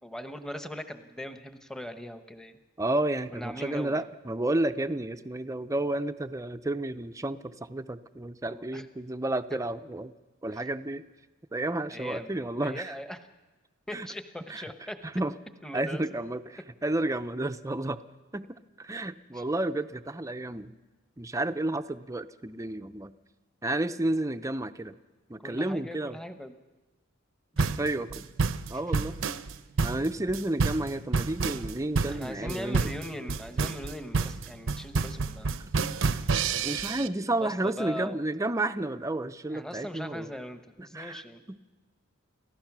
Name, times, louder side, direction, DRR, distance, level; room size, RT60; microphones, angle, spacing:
voice 1, 0.0-2.6 3.3-4.0 8.5-8.8 9.5-9.6 11.9-12.3 12.6-13.2 13.9-15.0 15.6-16.0 19.3-19.4 25.4-26.6 27.5-27.9 32.1-35.5 36.4-37.1 37.4-38.2 39.5-41.4, left 1 dB, 5° left, 8 dB, 1.0 m, -40 dB
voice 2, 2.8-10.1 10.4-11.1 11.5-13.0 13.9-14.1 14.5-14.6 15.0-15.3 15.7-18.0 18.3-20.7 21.2-23.1 23.6-24.9 25.3-26.2 27.8-28.2 28.7-29.2 29.8-32.9 36.6-40.3 40.9-41.2 41.5-41.6, right 1 dB, 15° right, 10 dB, 0.6 m, -31 dB
sound 1, 27.6-37.1, right 4 dB, 65° right, 0.7 m, -29 dB
29.5 x 15.5 x 6.1 m, 1.2 s
head